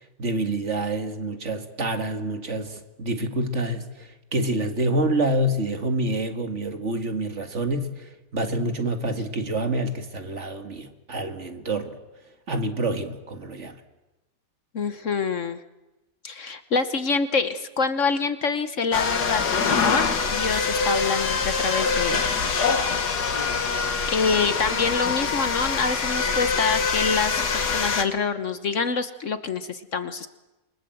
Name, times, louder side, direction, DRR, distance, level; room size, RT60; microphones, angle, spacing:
voice 1, 0.0-12.0 12.5-13.8, right 1 dB, 45° right, 7 dB, 2.1 m, -27 dB
voice 2, 14.7-15.6 16.2-20.0 20.3-22.2 24.1-27.3 27.6-30.3, left 4 dB, 55° left, 11 dB, 1.3 m, -26 dB
sound 1, 18.9-28.0, left 5 dB, 80° left, 2.3 m, -24 dB
27.5 x 23.5 x 7.8 m, 1.1 s
omnidirectional pair, 1.7 m